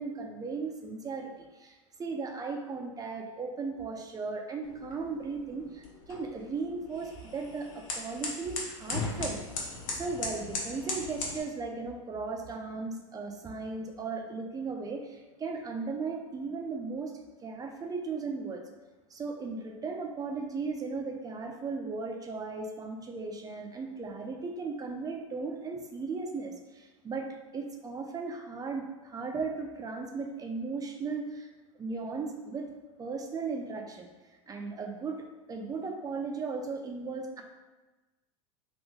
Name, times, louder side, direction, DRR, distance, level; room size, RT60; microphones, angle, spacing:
voice 1, 0.0-9.4 9.9-17.1 17.4-18.6 19.1-31.5 31.7-32.7 33.0-34.1 34.5-37.4, right 4 dB, 20° right, 3 dB, 0.5 m, -36 dB
sound 1, 4.6-11.4, left 3 dB, 70° left, 0.8 m, -38 dB
2.6 x 2.5 x 3.6 m, 1.2 s
hypercardioid pair, 85°, 17 cm